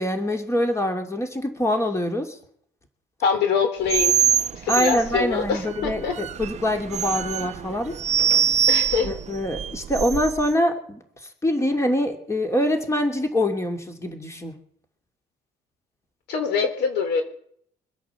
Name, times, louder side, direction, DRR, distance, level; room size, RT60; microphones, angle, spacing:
voice 1, 0.0-2.4 4.7-7.9 9.0-11.0 11.4-14.5, left 1 dB, 15° left, 4 dB, 2.8 m, -24 dB
voice 2, 3.2-4.2 4.5-6.2 8.7-9.1 16.3-17.2, left 6 dB, 85° left, 7 dB, 3.2 m, -24 dB
sound 1, 3.9-10.5, right 9 dB, 40° right, 0.6 m, -24 dB
24.0 x 8.5 x 7.1 m, 0.64 s
cardioid pair, 110°, 17 cm